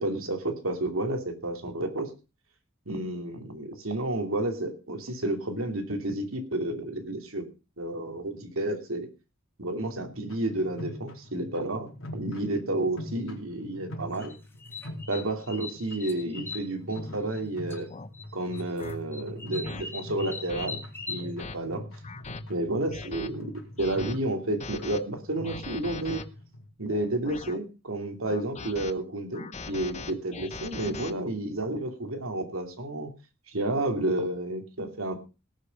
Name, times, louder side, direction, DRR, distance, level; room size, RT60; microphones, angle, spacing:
voice 1, 0.0-2.1 2.9-7.5 7.8-9.1 9.6-14.3 15.1-17.9 18.3-21.8 22.5-23.5 23.8-26.2 26.8-33.1 33.5-35.2, right 1 dB, 80° right, 5 dB, 2.8 m, -31 dB
sound 1, 10.1-26.7, left 1 dB, 90° left, 4.0 m, -43 dB
sound 2, 14.1-17.4 17.7-18.3 18.5-21.3, left 3 dB, 10° left, 2.1 m, -40 dB
sound 3, 17.1-17.3 17.9-18.1 18.8-19.0 19.6-19.8 20.5-20.7 21.2-21.6 22.0-22.4 22.9-23.3 23.8-24.2 24.6-25.0 25.4-26.2 26.9-27.6 28.2-28.9 29.3-31.1, left 4 dB, 35° left, 0.9 m, -40 dB
18.5 x 6.8 x 5.4 m, 0.31 s
head